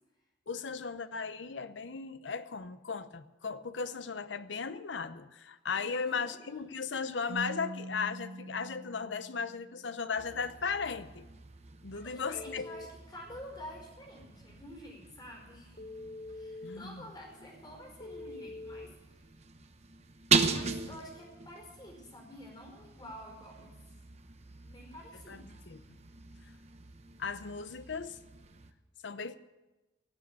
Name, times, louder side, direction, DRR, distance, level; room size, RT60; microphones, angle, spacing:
voice 1, 0.5-11.3 11.8-12.7 16.6-17.0 25.3-25.4 25.7-25.8 27.2-28.2 29.0-29.3, left 5 dB, 80° left, 12 dB, 0.8 m, -36 dB
voice 2, 5.7-6.6 11.9-15.9 16.3-19.2 20.5-23.8 24.6-25.5, equal, 25° left, -1 dB, 4.9 m, -49 dB
Keyboard (musical), 7.3-10.0, right 1 dB, 55° right, 1.4 m, -44 dB
sound 1, 10.2-28.7, right 5 dB, 35° right, 0.9 m, -39 dB
Telephone, 12.3-12.8 15.8-16.8 18.0-18.9, left 2 dB, 50° left, 1.0 m, -44 dB
18.0 x 7.6 x 8.3 m, 1.1 s
head